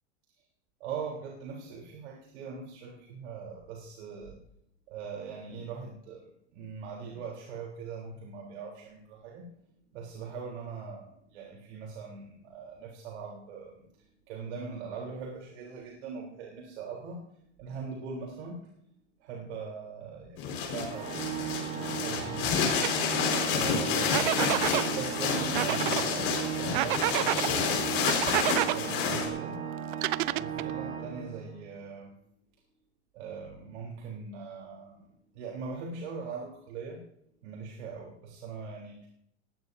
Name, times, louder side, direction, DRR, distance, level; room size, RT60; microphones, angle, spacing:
voice 1, 0.8-4.4 4.9-6.3 6.5-9.5 9.9-13.8 14.3-17.2 17.6-18.6 19.2-21.3 21.7-23.0 23.5-24.1 24.5-28.2 28.7-29.6 30.3-32.1 33.1-35.1 35.3-37.0 37.4-39.1, right 5 dB, 65° right, -2 dB, 3.9 m, -41 dB
sound 1, 20.4-29.3, left 6 dB, 35° left, 5.2 m, -29 dB
Organ, 20.9-31.7, right 8 dB, 20° right, 1.8 m, -36 dB
sound 2, 22.8-22.9 24.1-24.9 25.5-26.0 26.7-27.5 28.1-28.8 29.9-30.7, right 17 dB, 45° right, 0.5 m, -28 dB
21.0 x 16.0 x 2.8 m, 0.72 s
supercardioid pair, 170°, 35 cm